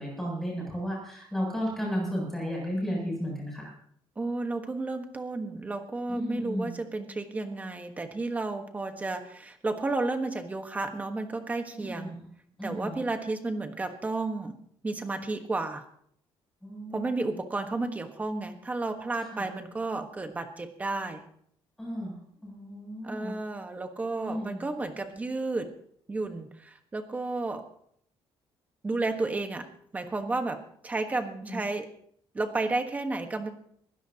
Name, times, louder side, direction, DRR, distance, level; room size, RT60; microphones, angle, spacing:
voice 1, 0.0-3.7 6.1-6.8 11.8-12.3 12.6-13.0 16.6-17.4 19.3-19.5 21.8-23.3 24.2-24.7 31.4-31.6, equal, 5° left, -3 dB, 7.9 m, -34 dB
voice 2, 4.2-12.2 12.6-14.5 14.8-15.8 16.9-21.2 23.0-25.7 26.1-27.6 28.8-31.9 32.3-33.5, right 3 dB, 15° right, 6 dB, 1.3 m, -32 dB
22.5 x 16.0 x 2.9 m, 0.64 s
cardioid pair, 170°, 10 cm